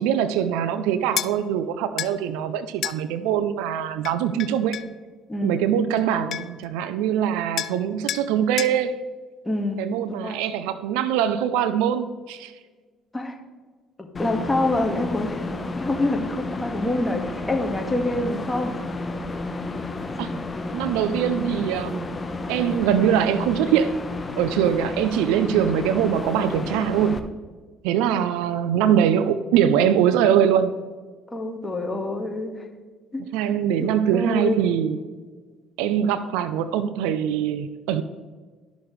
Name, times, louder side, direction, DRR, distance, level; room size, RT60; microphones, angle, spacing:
voice 1, 0.0-4.8 5.4-8.9 9.8-12.5 20.2-20.3 20.7-22.1 22.5-23.9 24.4-27.2 27.8-30.7 33.3-35.0 35.8-38.0, right 9 dB, 90° right, 12 dB, 0.4 m, -22 dB
sound 1, 1.2-1.3 2.0-2.1 2.8-3.0 4.0-4.9 6.0-6.1 6.3-6.6 7.6-7.8 8.1-8.3 8.6-8.8, left 11 dB, 65° left, 0.4 m, -29 dB
voice 2, 5.3-5.7 9.4-10.4 13.1-13.4 14.0-18.8 31.3-32.7 33.1-33.2 33.8-34.6, left 2 dB, 15° left, 2 dB, 1.6 m, -26 dB
sound 2, 14.1-27.2, left 2 dB, 30° left, 0.8 m, -32 dB
12.0 x 6.1 x 3.2 m, 1.4 s
supercardioid pair, 75°, 0 cm